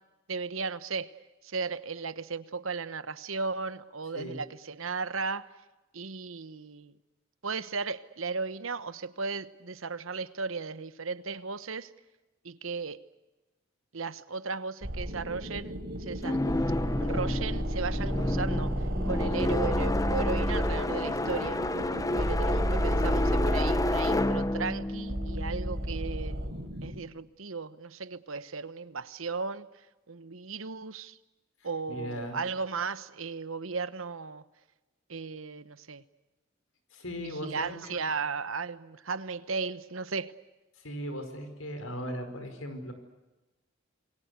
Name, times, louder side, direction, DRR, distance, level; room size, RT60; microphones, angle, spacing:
voice 1, 0.3-1.1 1.4-5.5 5.9-6.9 7.4-11.9 12.4-13.0 13.9-16.4 17.0-18.7 19.1-21.6 22.1-26.4 26.8-29.7 30.1-31.2 31.6-34.4 35.1-36.0 37.2-40.3, right 4 dB, 75° right, 14 dB, 1.1 m, -35 dB
sound 1, 14.8-27.0, right 1 dB, 55° right, 4.2 m, -32 dB
sound 2, 16.2-26.2, left 2 dB, 15° left, 0.9 m, -30 dB
voice 2, 31.9-32.4 36.9-38.0 40.8-42.9, equal, 85° left, 7 dB, 5.1 m, -38 dB
27.5 x 22.5 x 8.2 m, 1.1 s
head